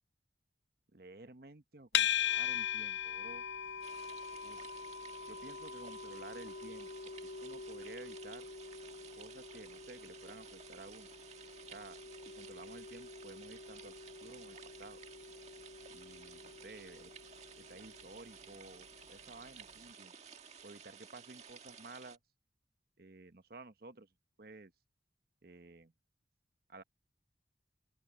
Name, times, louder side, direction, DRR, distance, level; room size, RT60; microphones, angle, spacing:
voice 1, 0.9-4.0 4.4-4.7 5.2-6.9 7.2-8.5 9.2-11.1 11.7-12.0 12.4-13.9 14.2-15.0 15.9-17.1 17.6-20.1 20.6-22.2 23.0-24.1 24.4-24.7 25.4-25.9 26.7-26.8, right 2 dB, 55° right, 1.1 m, -53 dB
sound 1, 1.9-19.1, left 9 dB, 85° left, 0.6 m, -41 dB
sound 2, 3.8-22.2, right 6 dB, 40° right, 1.8 m, -55 dB
open air
head